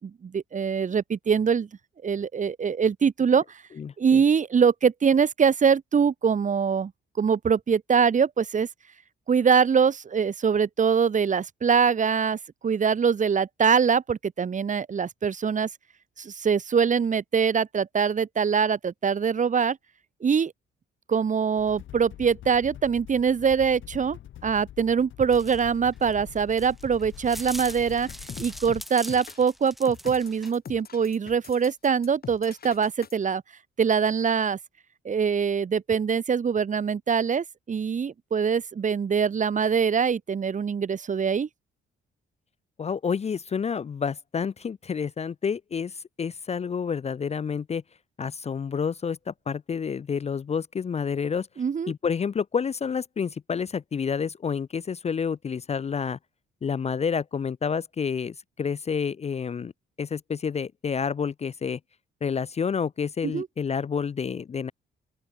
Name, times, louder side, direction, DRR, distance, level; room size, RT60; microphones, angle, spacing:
voice 1, 0.0-1.7 2.0-3.4 4.0-6.9 7.2-8.7 9.3-12.4 12.6-15.7 16.2-19.8 20.2-20.5 21.1-28.1 28.4-33.4 33.8-34.6 35.0-41.5 51.6-51.9 63.2-63.5, right 6 dB, 40° right, 1.4 m, -23 dB
voice 2, 3.8-4.2 42.8-47.8 48.2-51.5 51.9-56.2 56.6-59.7 60.0-61.8 62.2-64.7, left 6 dB, 35° left, 0.6 m, -29 dB
sound 1, 21.6-28.9, left 12 dB, 75° left, 5.5 m, -44 dB
sound 2, 25.3-30.5, equal, ahead, 2.9 m, -42 dB
sound 3, 27.7-33.1, left 7 dB, 50° left, 5.2 m, -42 dB
open air
cardioid pair, 90°, 20 cm